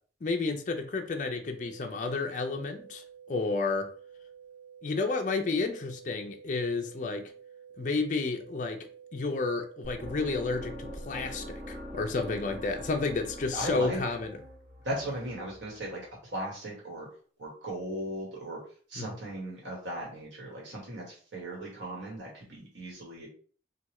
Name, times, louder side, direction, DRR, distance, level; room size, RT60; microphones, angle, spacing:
voice 1, 0.2-3.0 3.3-3.9 4.8-7.3 7.8-8.8 9.1-14.4 19.0-19.1, left 3 dB, 45° left, 4 dB, 0.4 m, -31 dB
sound 1, 1.5-11.5, right 8 dB, 65° right, 0.4 m, -51 dB
sound 2, 9.8-15.9, equal, 45° right, 1.0 m, -43 dB
voice 2, 13.5-14.0 14.8-17.1 17.4-18.6 18.9-23.3, right 1 dB, 85° right, -3 dB, 1.3 m, -37 dB
3.3 x 2.3 x 2.9 m, 0.43 s
head